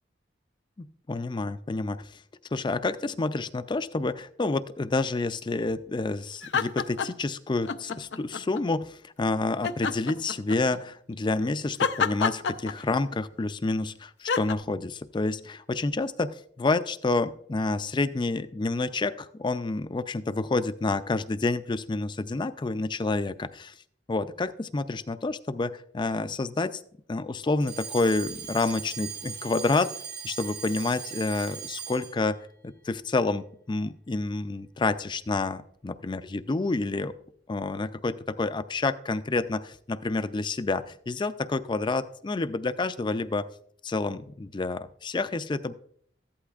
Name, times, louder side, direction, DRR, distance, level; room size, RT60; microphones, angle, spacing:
voice 1, 0.8-2.2 2.5-23.8 24.1-26.8 27.1-29.9 30.2-37.1 37.5-43.5 43.8-45.7, left 3 dB, 25° left, 13 dB, 0.4 m, -29 dB
sound 1, 6.4-7.3 7.7-8.6 9.6-10.8 11.8-13.2 14.3-14.5, left 6 dB, 80° left, 0.6 m, -28 dB
Alarm, 27.6-32.2, right 7 dB, 65° right, 3.5 m, -39 dB
14.5 x 11.5 x 2.5 m, 0.63 s
head